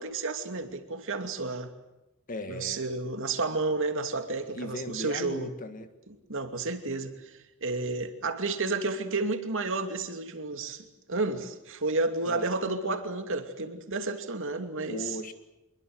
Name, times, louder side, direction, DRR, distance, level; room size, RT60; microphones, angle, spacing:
voice 1, 0.0-1.7 2.5-5.5 6.3-7.3 7.6-15.2, right 3 dB, 60° right, 7 dB, 2.7 m, -31 dB
voice 2, 2.3-2.8 4.5-5.9 12.2-12.5 14.9-15.3, left 1 dB, 40° left, 9 dB, 1.7 m, -37 dB
26.0 x 22.5 x 7.9 m, 0.99 s
head